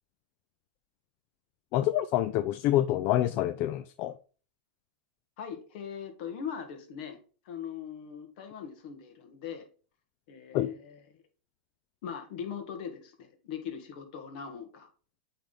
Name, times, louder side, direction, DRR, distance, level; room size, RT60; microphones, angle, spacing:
voice 1, 1.7-4.1 10.5-10.7, left 13 dB, 40° left, 0.4 m, -27 dB
voice 2, 5.4-7.2 7.4-9.7 10.3-11.0 12.0-14.9, left 7 dB, 55° left, 1.7 m, -40 dB
8.6 x 3.5 x 3.9 m
supercardioid pair, 140°, 6 cm